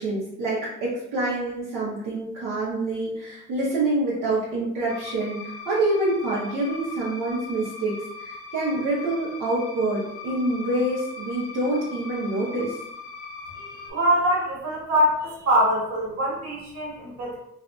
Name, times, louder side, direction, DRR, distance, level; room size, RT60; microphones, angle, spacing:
voice 1, 0.0-12.7, right 2 dB, 85° right, -8 dB, 0.9 m, -26 dB
sound 1, 4.9-13.9, left 4 dB, 50° left, 0.5 m, -40 dB
voice 2, 13.6-17.4, equal, 65° right, -5 dB, 1.3 m, -24 dB
2.6 x 2.5 x 2.2 m, 0.79 s
cardioid pair, 90°, 30 cm